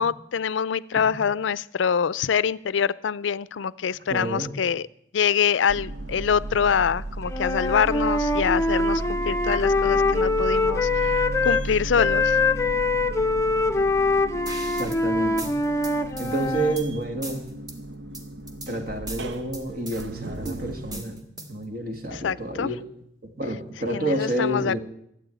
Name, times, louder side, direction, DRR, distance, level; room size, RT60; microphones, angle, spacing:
voice 1, 0.0-4.9 5.1-12.4 22.1-22.7 23.9-24.8, left 7 dB, 85° left, 20 dB, 0.4 m, -25 dB
voice 2, 0.9-1.2 4.1-4.5 14.7-15.5 16.2-17.4 18.7-21.2 21.5-22.9 23.2-24.8, right 1 dB, 55° right, 6 dB, 2.0 m, -29 dB
sound 1, 5.7-21.0, right 2 dB, 70° right, 0.8 m, -34 dB
Wind instrument woodwind instrument, 7.3-11.7 12.0-16.8, left 3 dB, 15° left, 0.6 m, -24 dB
sound 2, 14.5-15.0 15.4-16.9 17.2-17.8 18.1-18.7 19.1-20.0 20.5-21.7, right 2 dB, 20° right, 1.6 m, -39 dB
13.0 x 8.5 x 9.0 m, 0.75 s
head